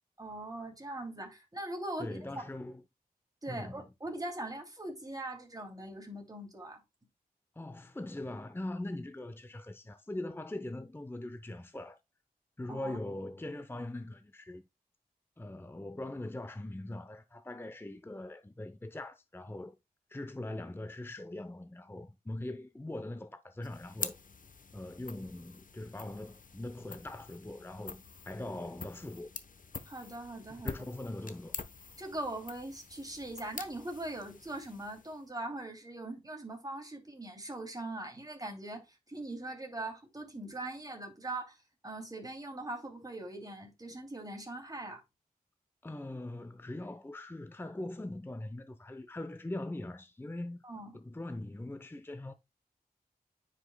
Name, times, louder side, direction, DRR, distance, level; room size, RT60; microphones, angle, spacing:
voice 1, 0.2-2.4 3.4-6.8 12.7-13.0 29.9-30.7 32.0-41.6 41.8-45.0 50.6-50.9, right 2 dB, 25° right, 2.7 m, -41 dB
voice 2, 2.0-2.8 3.5-3.9 7.6-12.0 12.6-14.6 15.4-19.7 20.1-24.2 24.7-29.3 30.5-31.6 45.8-50.6 50.9-52.3, left 1 dB, 15° left, 0.7 m, -41 dB
sound 1, 23.6-35.3, left 5 dB, 60° left, 0.9 m, -46 dB
9.6 x 5.2 x 2.2 m
cardioid pair, 45°, 16 cm